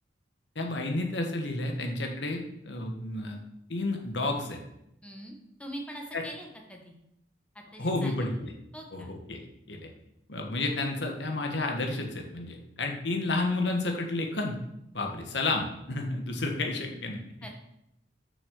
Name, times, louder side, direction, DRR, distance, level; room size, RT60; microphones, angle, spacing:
voice 1, 0.5-3.4 3.7-4.6 6.1-6.2 7.8-8.5 8.9-9.4 9.7-9.9 10.3-14.6 14.9-17.2, left 2 dB, 65° left, 2 dB, 1.5 m, -31 dB
voice 2, 5.0-6.9 7.7-8.3 8.7-9.1 17.4-17.5, equal, 5° left, 1 dB, 1.4 m, -43 dB
7.5 x 6.0 x 6.6 m, 0.80 s
head